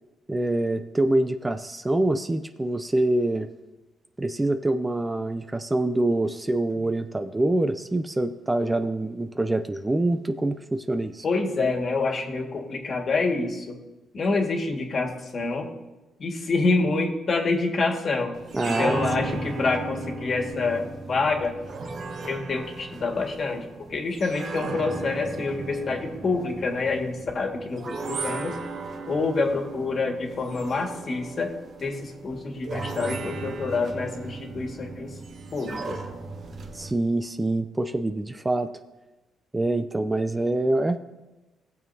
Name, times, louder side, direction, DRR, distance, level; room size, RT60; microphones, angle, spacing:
voice 1, 0.3-3.5 4.2-11.2 18.5-19.3 36.7-38.7 39.5-41.0, right 2 dB, 15° right, 9 dB, 0.4 m, -25 dB
voice 2, 11.2-13.8 14.1-15.7 16.2-18.4 18.6-21.6 22.2-23.7 23.9-28.6 29.1-31.6 31.8-35.1 35.5-36.0, left 3 dB, 45° left, 2 dB, 1.8 m, -27 dB
sound 1, 18.3-36.9, right 3 dB, 55° right, 1.1 m, -36 dB
19.0 x 7.0 x 2.7 m, 1.1 s
cardioid pair, 90°, 0 cm